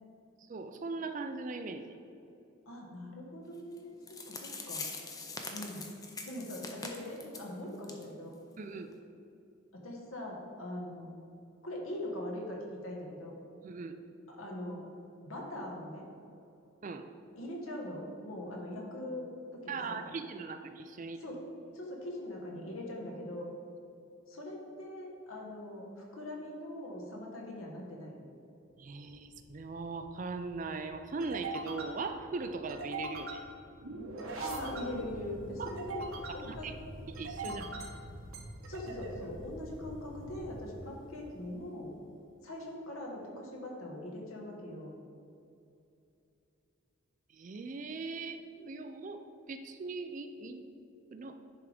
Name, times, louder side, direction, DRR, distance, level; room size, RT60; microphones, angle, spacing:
voice 1, 0.5-1.9 8.6-8.9 13.6-13.9 16.8-17.1 19.7-21.3 28.8-33.4 35.6-35.7 36.4-36.7 37.2-37.6 47.3-50.6 51.1-51.4, right 4 dB, 35° right, 8 dB, 0.3 m, -40 dB
voice 2, 2.7-4.0 4.3-4.8 5.5-5.8 6.3-8.3 9.7-11.1 11.6-13.3 14.3-14.8 15.2-16.0 17.4-20.0 21.2-21.4 21.7-23.5 24.3-28.2 34.3-36.7 37.4-37.7 38.7-41.9 42.4-44.9, left 1 dB, 75° left, -1 dB, 1.4 m, -41 dB
sound 1, 3.8-3.9 4.1-7.5 7.8-8.0 8.3-8.4 8.9-9.0, left 3 dB, 15° left, 0.5 m, -42 dB
sound 2, 29.1-41.6, right 2 dB, 75° right, 1.0 m, -44 dB
10.0 x 3.5 x 5.0 m, 2.7 s
head